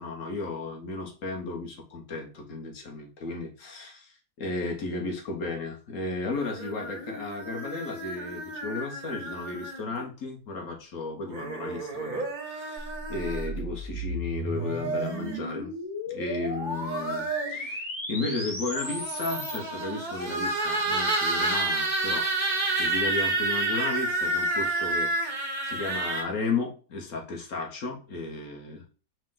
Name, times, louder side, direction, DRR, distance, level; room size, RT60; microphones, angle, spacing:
voice 1, 0.0-15.7 16.1-22.3 22.8-28.8, left 3 dB, 55° left, 1 dB, 1.2 m, -34 dB
sound 1, 6.3-10.0 11.3-13.6 14.4-15.4 16.5-17.7 18.7-26.2, right 2 dB, 45° right, 0.6 m, -30 dB
sound 2, 12.8-19.6, equal, 15° left, 0.8 m, -35 dB
5.1 x 2.1 x 3.7 m, 0.37 s
omnidirectional pair, 1.8 m